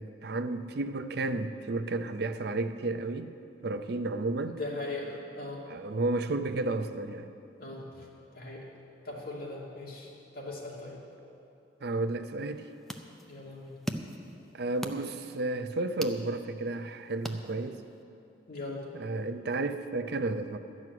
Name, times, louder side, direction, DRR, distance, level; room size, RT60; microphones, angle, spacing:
voice 1, 0.0-3.3 3.6-4.6 5.7-7.3 11.8-12.7 14.5-17.8 18.9-20.6, right 2 dB, 65° right, 9 dB, 0.5 m, -32 dB
voice 2, 4.5-5.6 7.6-8.0 8.3-8.6 9.0-10.1 10.3-11.0 13.3-13.8 18.5-18.8, left 2 dB, 60° left, -5 dB, 2.7 m, -39 dB
sound 1, 12.4-18.0, equal, ahead, 0.6 m, -43 dB
12.5 x 6.2 x 9.3 m, 2.8 s
head